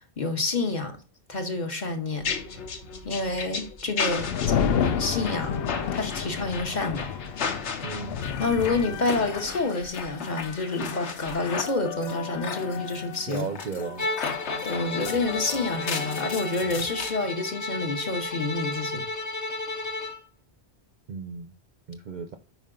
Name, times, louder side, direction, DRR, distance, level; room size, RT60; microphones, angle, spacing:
voice 1, 0.2-0.9 1.3-2.2 3.0-5.6 5.9-7.1 8.4-13.5 14.6-19.0, left 3 dB, 45° left, 1.0 m, -28 dB
sound 1, 2.2-17.1, left 6 dB, 80° left, 1.2 m, -34 dB
sound 2, 4.2-9.6, left 7 dB, 65° left, 0.7 m, -30 dB
voice 2, 7.8-8.2 13.3-14.1 21.1-21.5 21.9-22.4, right 5 dB, 55° right, 0.5 m, -34 dB
Bowed string instrument, 14.0-20.2, left 2 dB, 25° left, 0.4 m, -33 dB
5.5 x 4.6 x 3.7 m
omnidirectional pair, 1.1 m